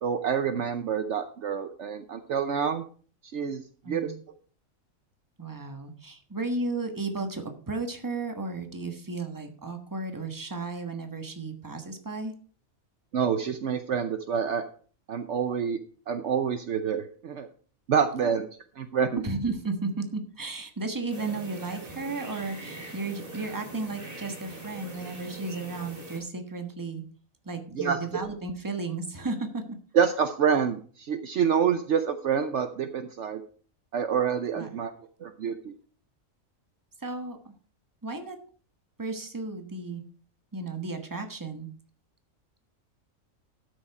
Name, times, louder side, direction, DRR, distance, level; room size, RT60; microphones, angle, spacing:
voice 1, 0.0-2.8 3.3-4.1 13.1-14.6 15.1-15.8 16.1-17.5 17.9-18.4 18.8-19.2 27.8-28.0 29.9-33.4 33.9-34.9 35.2-35.7, right 7 dB, 60° right, 9 dB, 1.0 m, -27 dB
voice 2, 3.8-4.2 5.4-12.3 18.2-18.3 19.2-27.0 27.4-29.8 34.6-34.7 37.0-37.4 38.0-38.4 39.0-40.0 40.5-41.7, right 3 dB, 15° right, 5 dB, 1.3 m, -34 dB
sound 1, 21.1-26.2, right 2 dB, 40° right, 2.7 m, -42 dB
12.5 x 6.5 x 4.8 m, 0.43 s
omnidirectional pair, 1.4 m